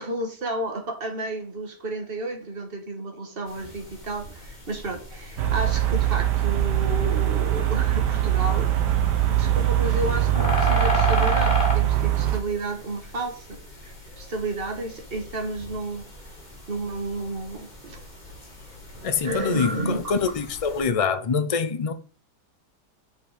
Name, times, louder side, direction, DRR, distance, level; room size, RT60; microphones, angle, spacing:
voice 1, 0.0-8.7 9.3-16.1 16.7-18.0 19.2-20.2, right 2 dB, 35° right, 1.7 m, -32 dB
sound 1, 3.4-20.9, equal, 25° left, 2.1 m, -35 dB
sound 2, 5.4-12.4, right 12 dB, 80° right, 1.6 m, -22 dB
voice 2, 19.0-21.9, left 5 dB, 65° left, 0.3 m, -25 dB
7.7 x 5.7 x 5.0 m
omnidirectional pair, 1.8 m